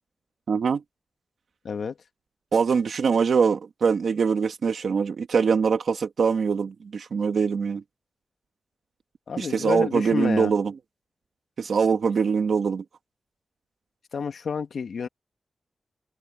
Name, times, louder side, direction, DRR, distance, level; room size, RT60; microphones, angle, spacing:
voice 1, 0.5-0.8 2.5-7.8 9.4-10.7 11.6-12.8, right 5 dB, 85° right, 1.9 m, -23 dB
voice 2, 9.3-10.5 14.1-15.1, left 6 dB, 85° left, 1.8 m, -29 dB
open air
wide cardioid pair, 135°, 0 cm